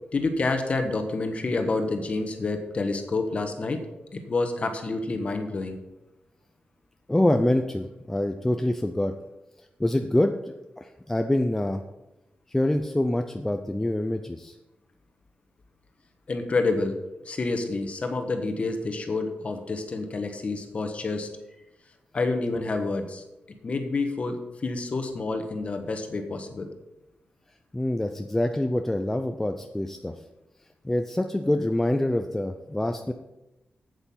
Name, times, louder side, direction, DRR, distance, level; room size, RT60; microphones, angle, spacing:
voice 1, 0.1-3.9 4.1-5.8 16.3-17.0 17.2-21.3 22.1-23.2 23.6-26.7, left 3 dB, 40° left, 6 dB, 1.3 m, -28 dB
voice 2, 7.1-9.1 9.8-10.5 10.8-11.8 12.5-14.5 27.7-30.1 30.8-33.1, left 1 dB, 10° left, 5 dB, 0.5 m, -25 dB
8.2 x 8.2 x 5.7 m, 0.97 s
wide cardioid pair, 140°, 3 cm